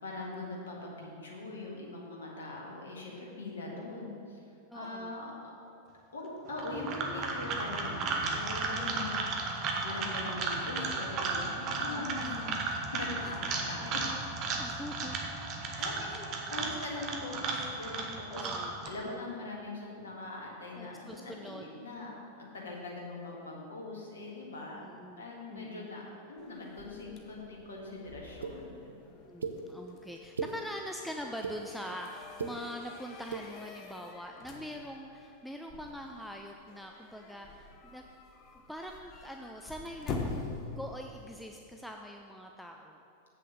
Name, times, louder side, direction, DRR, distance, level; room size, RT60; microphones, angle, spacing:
voice 1, 0.0-4.4 4.7-5.3 6.1-9.3 9.6-14.0 14.7-14.8 15.8-18.5 18.9-22.1 22.4-24.9 25.2-26.0 26.3-28.8, left 2 dB, 65° left, -2 dB, 1.7 m, -41 dB
voice 2, 4.7-5.1 11.9-12.4 12.8-12.9 13.2-13.4 14.4-15.2 15.7-16.3 18.3-18.7 20.8-21.6 22.6-22.8 24.8-25.9 29.1-38.1 38.5-43.0, equal, ahead, 2 dB, 0.4 m, -44 dB
sound 1, 6.5-18.9, right 3 dB, 35° right, 1.0 m, -35 dB
sound 2, 26.4-41.4, left 3 dB, 35° left, 0.9 m, -46 dB
sound 3, 28.4-28.5 29.4-29.5 30.2-30.5 31.2-31.6 32.2-32.5 33.2-33.4, right 6 dB, 70° right, 0.6 m, -36 dB
7.7 x 6.5 x 6.3 m, 2.7 s
figure-of-eight pair, 90°, 0 cm